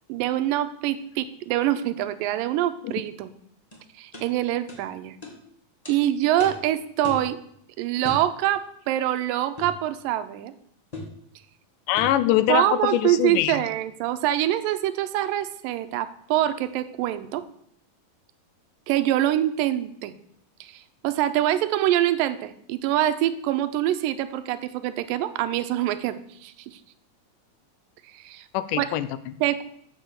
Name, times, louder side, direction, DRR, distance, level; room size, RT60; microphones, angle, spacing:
voice 1, 0.1-3.3 4.0-5.1 5.9-7.4 7.8-8.6 8.9-10.5 12.5-17.4 18.9-20.1 20.6-26.8 28.1-28.5 28.8-28.9 29.4-29.6, right 13 dB, 90° right, 12 dB, 2.3 m, -25 dB
sound 1, 3.7-3.8 4.1-4.3 4.7-4.8 5.2-5.4 5.8-6.0 6.4-6.6 7.0-7.3 8.0-8.3 9.6-9.8 10.9-11.2 12.0-12.2, left 2 dB, 25° left, 0.9 m, -37 dB
voice 2, 11.9-13.6 28.5-29.4, left 13 dB, 80° left, 13 dB, 2.0 m, -23 dB
7.4 x 6.8 x 7.1 m, 0.70 s
omnidirectional pair, 3.9 m